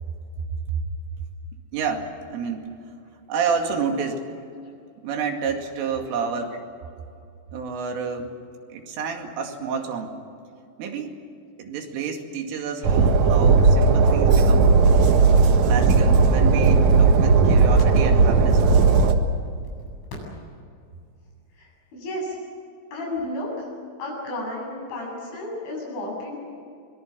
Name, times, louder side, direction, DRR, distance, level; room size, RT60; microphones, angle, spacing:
voice 1, 1.7-2.7 3.3-4.3 5.0-6.6 7.5-8.3 8.7-10.2 10.8-11.2 11.6-14.8 15.6-18.6, right 6 dB, 85° right, 3 dB, 4.9 m, -29 dB
Train, 12.8-19.1, right 4 dB, 60° right, 2.0 m, -16 dB
voice 2, 21.6-22.4 22.9-23.7 24.0-26.4, left 1 dB, 75° left, -1 dB, 10.5 m, -32 dB
25.0 x 22.5 x 7.5 m, 2.4 s
omnidirectional pair, 5.6 m